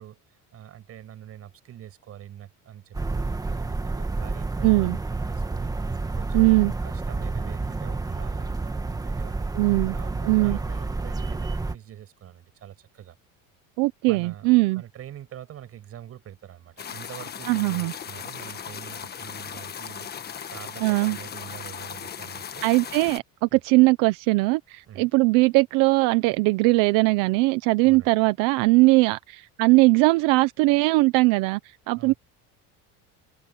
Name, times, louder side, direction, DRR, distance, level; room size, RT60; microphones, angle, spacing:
voice 1, 0.0-9.5 9.9-13.2 14.1-22.9 23.5-23.6 24.9-25.1 27.8-28.1 31.9-32.2, right 11 dB, 45° right, 6.4 m, -44 dB
sound 1, 2.9-11.8, right 3 dB, 10° right, 1.5 m, -29 dB
voice 2, 4.6-5.0 6.3-6.7 9.5-9.9 10.3-10.6 13.8-14.8 17.5-17.9 20.8-21.2 22.6-32.1, right 23 dB, 80° right, 0.9 m, -20 dB
sound 2, 16.8-23.2, left 8 dB, 30° left, 1.4 m, -37 dB
cardioid pair, 135°, 33 cm